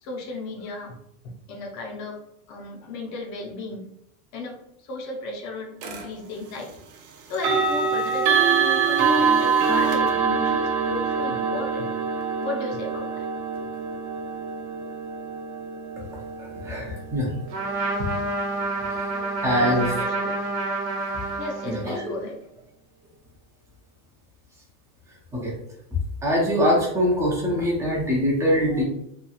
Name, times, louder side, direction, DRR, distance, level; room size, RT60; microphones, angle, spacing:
voice 1, 0.0-1.0 1.5-2.2 2.5-3.9 4.3-4.6 4.8-6.7 7.3-11.9 12.4-13.3 19.1-20.4 21.4-22.4, left 2 dB, 40° left, 1 dB, 0.6 m, -35 dB
sound 1, 5.8-6.0 7.3-18.2, right 5 dB, 90° right, 0.6 m, -25 dB
voice 2, 16.4-17.3 19.4-19.9 21.6-22.1 25.3-25.5 26.2-28.8, equal, 5° right, -4 dB, 0.4 m, -23 dB
Trumpet, 17.5-22.1, right 2 dB, 60° right, 1.0 m, -28 dB
2.9 x 2.3 x 2.3 m, 0.77 s
supercardioid pair, 150°, 42 cm